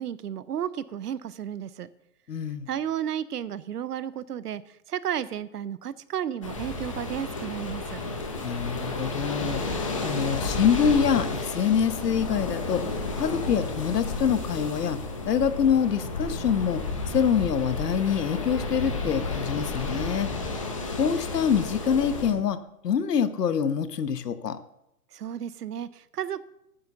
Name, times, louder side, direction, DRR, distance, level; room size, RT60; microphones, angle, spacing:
voice 1, 0.0-1.9 2.7-8.0 25.1-26.4, right 9 dB, 75° right, 17 dB, 0.7 m, -33 dB
voice 2, 2.3-2.7 8.4-9.6 10.0-12.8 13.2-15.0 15.3-20.3 21.0-22.6 22.8-24.6, left 7 dB, 85° left, 12 dB, 1.1 m, -25 dB
sound 1, 6.4-22.3, left 3 dB, 20° left, 0.8 m, -32 dB
9.3 x 6.8 x 7.0 m, 0.81 s
hypercardioid pair, 175°, 46 cm